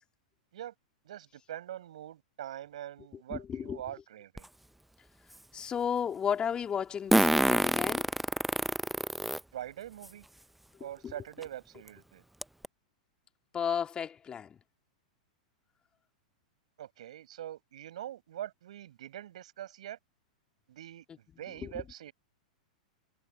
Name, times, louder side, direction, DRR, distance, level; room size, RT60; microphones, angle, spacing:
voice 1, 1.0-4.5 9.5-10.3 10.8-12.2 16.8-20.0 20.7-21.0 21.4-22.1, right 12 dB, 60° right, 7.1 m, -43 dB
voice 2, 3.3-3.8 5.5-8.1 11.0-11.1 13.5-14.5, left 7 dB, 20° left, 3.1 m, -33 dB
Fart, 4.4-4.5 7.1-9.4 10.0-10.1 11.4-11.5 11.9-12.0 12.4-12.6, right 1 dB, 5° right, 0.8 m, -26 dB
figure-of-eight pair, 100°, 4 cm